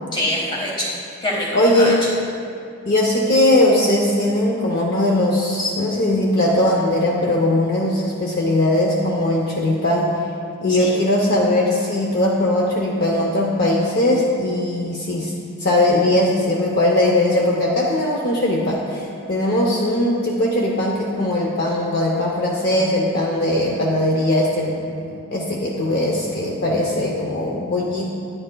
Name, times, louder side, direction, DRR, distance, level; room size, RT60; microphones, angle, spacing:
voice 1, 0.1-1.9 10.7-10.9, left 1 dB, 20° left, -4 dB, 1.3 m, -25 dB
voice 2, 1.5-2.0 2.9-10.2 10.6-15.3 15.6-28.1, left 1 dB, 45° left, -2 dB, 0.6 m, -19 dB
9.9 x 9.8 x 2.2 m, 2.5 s
head